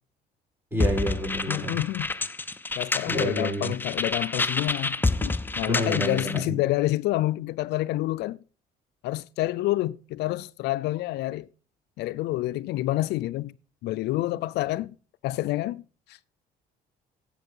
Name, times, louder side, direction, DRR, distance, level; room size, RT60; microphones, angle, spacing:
voice 1, 0.7-1.8 3.0-3.7 5.6-6.6, equal, 15° right, 6.3 m, -29 dB
sound 1, 0.8-6.4, left 3 dB, 10° left, 0.7 m, -28 dB
voice 2, 1.5-2.1 2.7-8.4 9.0-11.5 12.0-13.5 13.8-14.9 15.2-15.8 16.1-16.2, left 16 dB, 80° left, 0.5 m, -28 dB
12.0 x 8.4 x 5.4 m
cardioid pair, 110°, 17 cm